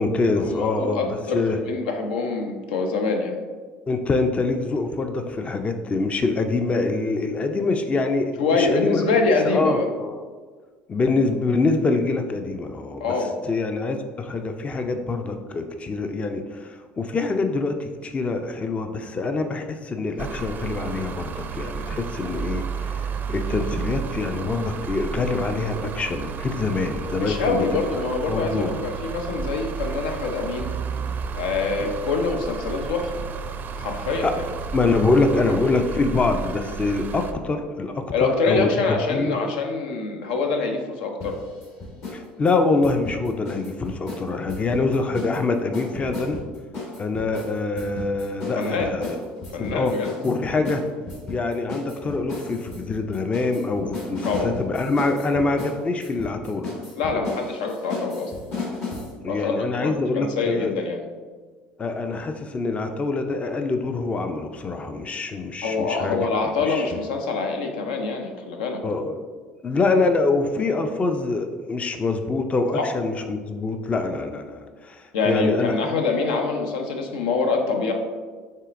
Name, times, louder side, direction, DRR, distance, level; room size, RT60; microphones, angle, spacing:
voice 1, 0.0-1.1 1.3-1.6 3.9-9.0 9.4-10.2 10.9-13.0 13.4-27.6 28.3-28.8 31.8-31.9 34.2-34.3 34.7-39.4 42.1-46.4 47.0-49.2 49.6-49.9 50.2-50.8 51.3-56.7 59.2-60.8 61.8-66.3 66.6-67.0 68.8-69.3 69.6-75.7, left 3 dB, 25° left, 6 dB, 0.4 m, -25 dB
voice 2, 0.6-1.4 1.7-3.4 8.4-9.9 13.0-13.3 27.1-30.7 31.4-33.2 33.7-34.4 38.1-41.4 48.5-48.9 49.5-50.1 54.2-54.5 57.0-58.3 59.3-59.5 59.8-61.0 65.6-68.8 72.7-72.9 75.1-77.9, left 4 dB, 80° left, 3 dB, 0.5 m, -25 dB
sound 1, 20.2-37.3, right 6 dB, 40° right, 0.4 m, -32 dB
sound 2, 41.2-42.2 42.5-45.4 45.7-59.1, left 3 dB, 55° left, 1.5 m, -34 dB
5.5 x 3.4 x 2.5 m, 1.5 s
hypercardioid pair, 75°, 5 cm